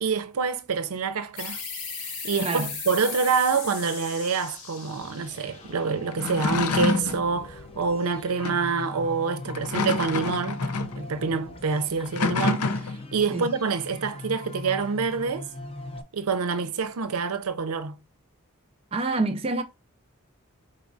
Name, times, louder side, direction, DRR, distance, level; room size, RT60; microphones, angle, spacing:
voice 1, 0.0-1.6 2.0-15.5 16.1-18.0, right 5 dB, 75° right, 0.6 m, -27 dB
sound 1, 1.4-6.6, left 5 dB, 70° left, 1.5 m, -37 dB
voice 2, 2.4-2.7 13.3-13.5 18.9-19.6, right 3 dB, 25° right, 0.4 m, -27 dB
sound 2, 5.0-16.0, left 2 dB, 25° left, 0.6 m, -40 dB
sound 3, 6.1-7.2 8.4-8.7 9.5-11.0 12.0-13.1, left 4 dB, 90° left, 0.6 m, -27 dB
4.8 x 3.9 x 2.6 m
head